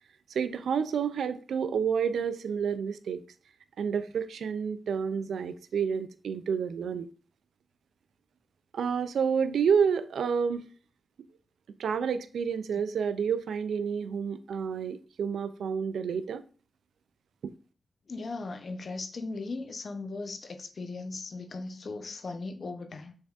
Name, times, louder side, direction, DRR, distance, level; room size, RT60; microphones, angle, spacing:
voice 1, 0.3-3.2 3.8-7.1 8.7-10.7 11.8-16.4, right 6 dB, 90° right, 0.3 m, -29 dB
voice 2, 18.1-23.1, left 3 dB, 65° left, 0.7 m, -38 dB
6.3 x 3.5 x 2.4 m
cardioid pair, 50°, 0 cm